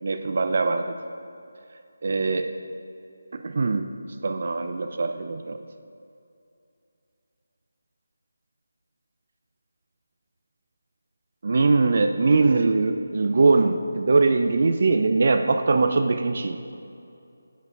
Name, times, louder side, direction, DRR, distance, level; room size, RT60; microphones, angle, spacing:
voice 1, 0.0-1.0 2.0-2.5 3.3-3.9 4.2-5.6 11.4-16.6, right 3 dB, 50° right, 7 dB, 0.4 m, -22 dB
13.5 x 10.5 x 2.4 m, 2.6 s
figure-of-eight pair, 155°, 0 cm